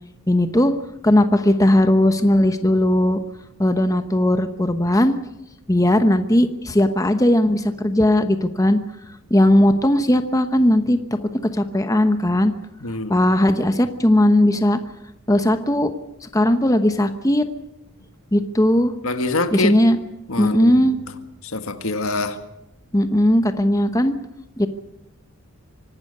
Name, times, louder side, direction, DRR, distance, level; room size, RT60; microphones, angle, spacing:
voice 1, 0.3-0.7 1.0-3.2 3.6-5.1 5.7-8.8 9.3-11.0 11.3-12.5 13.1-14.8 15.3-15.9 16.3-17.4 18.3-18.9 19.5-20.0 20.4-21.0 22.9-24.1 24.6-24.7, left 1 dB, 15° left, 8 dB, 1.0 m, -17 dB
voice 2, 12.8-13.1 19.0-19.8 20.3-20.9 21.5-22.4, left 2 dB, 75° left, 8 dB, 1.7 m, -24 dB
25.0 x 12.5 x 9.7 m, 0.92 s
head